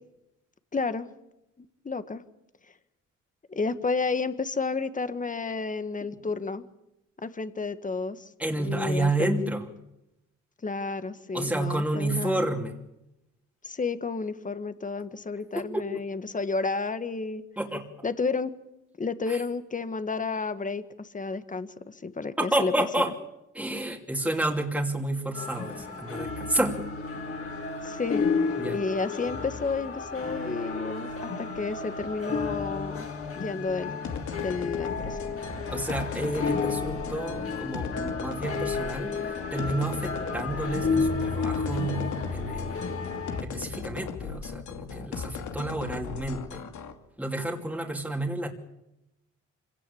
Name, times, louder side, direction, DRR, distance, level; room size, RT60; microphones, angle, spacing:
voice 1, 0.7-1.1 1.8-2.2 3.5-6.6 7.2-8.3 8.6-9.3 10.6-12.5 13.6-17.4 18.0-18.5 19.0-22.7 27.8-28.3 28.7-33.1 33.3-33.9 34.4-35.2, left 4 dB, 25° left, 11 dB, 1.6 m, -31 dB
voice 2, 8.4-9.7 11.3-12.8 15.5-15.9 17.6-17.8 19.3-19.4 22.4-23.1 23.5-26.8 28.6-28.8 35.7-43.0 43.4-46.6 47.2-48.5, right 1 dB, 5° right, 0 dB, 2.9 m, -30 dB
sound 1, 25.3-43.4, left 4 dB, 50° left, 4.4 m, -32 dB
sound 2, 34.0-46.9, left 6 dB, 75° left, 2.6 m, -37 dB
25.5 x 17.5 x 8.6 m, 0.90 s
cardioid pair, 90°, 30 cm